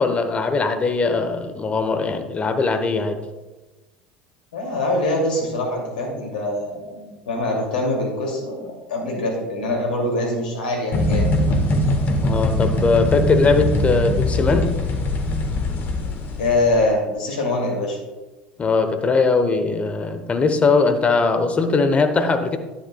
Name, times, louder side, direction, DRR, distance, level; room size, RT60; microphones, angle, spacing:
voice 1, 0.0-3.2 12.2-14.8 18.6-22.6, left 4 dB, 25° left, 7 dB, 1.0 m, -20 dB
voice 2, 4.5-11.5 16.4-18.0, left 2 dB, 75° left, 0 dB, 2.6 m, -24 dB
sound 1, 10.9-16.8, left 1 dB, 40° left, 1.5 m, -21 dB
10.5 x 10.0 x 2.3 m, 1.1 s
hypercardioid pair, 70°, 5 cm